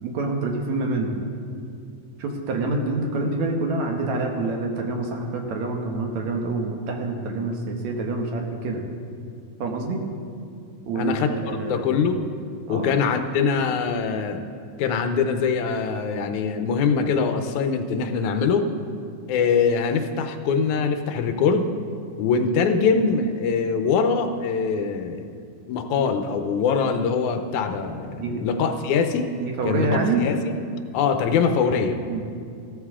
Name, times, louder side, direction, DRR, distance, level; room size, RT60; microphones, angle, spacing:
voice 1, 0.0-1.2 2.2-8.8 9.6-10.0 10.9-11.8 12.7-12.9 28.1-28.5 29.4-30.3 32.1-32.3, right 3 dB, 70° right, 2 dB, 2.5 m, -26 dB
voice 2, 11.0-11.3 11.7-12.2 12.7-14.4 14.8-18.7 19.3-21.7 22.2-25.3 25.7-29.3 29.6-30.6 30.9-32.0, left 5 dB, 85° left, 7 dB, 2.2 m, -23 dB
16.0 x 13.0 x 3.7 m, 2.3 s
omnidirectional pair, 3.3 m